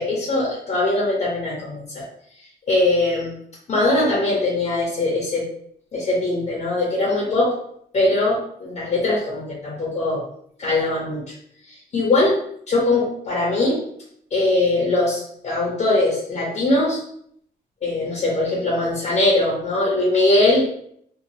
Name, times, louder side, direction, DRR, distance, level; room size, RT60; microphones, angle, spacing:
voice 1, 0.0-2.0 2.7-3.3 3.7-5.5 5.9-7.5 7.9-10.2 10.6-11.2 11.9-12.3 12.7-13.8 14.3-17.0 17.8-20.7, left 2 dB, 45° left, -4 dB, 0.8 m, -21 dB
2.7 x 2.3 x 2.9 m, 0.66 s
cardioid pair, 130°, 17 cm